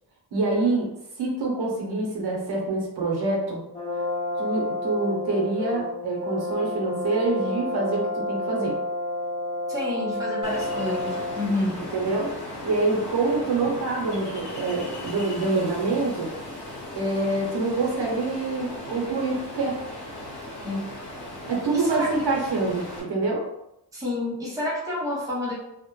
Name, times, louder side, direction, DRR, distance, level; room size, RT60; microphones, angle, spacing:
voice 1, 0.3-0.9 1.2-3.6 4.4-8.8 11.8-16.3 17.0-19.8 21.5-23.5, right 3 dB, 70° right, -2 dB, 0.7 m, -26 dB
Brass instrument, 3.7-11.5, left 1 dB, 20° left, 0.9 m, -30 dB
voice 2, 9.7-11.8 20.6-20.9 21.7-22.1 23.9-25.5, left 2 dB, 10° right, -6 dB, 0.6 m, -29 dB
Ocean, 10.4-23.0, left 1 dB, 85° left, 0.9 m, -37 dB
2.1 x 2.0 x 2.9 m, 0.85 s
wide cardioid pair, 160°, 40 cm